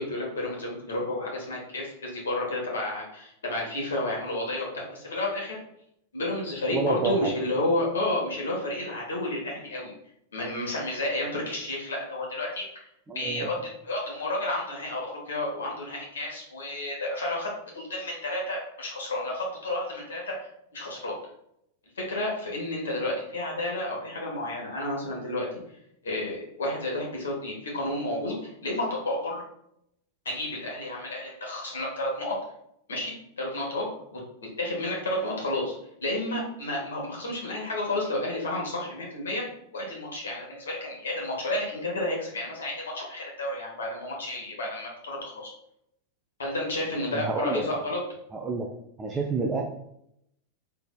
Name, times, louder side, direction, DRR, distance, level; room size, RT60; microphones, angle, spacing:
voice 1, 0.0-5.5 6.1-9.9 10.3-12.6 13.1-13.5 13.8-20.5 20.7-21.1 22.0-25.5 26.0-29.4 30.2-32.3 32.9-34.2 34.6-35.8 36.0-39.4 39.7-45.5 46.4-48.0, left 1 dB, 65° left, -2 dB, 1.3 m, -31 dB
voice 2, 6.7-7.3 13.1-13.5 47.1-47.7 48.3-48.7 49.0-49.6, right 4 dB, 15° right, 1 dB, 0.4 m, -29 dB
4.1 x 3.3 x 2.3 m, 0.76 s
figure-of-eight pair, 90°, 0 cm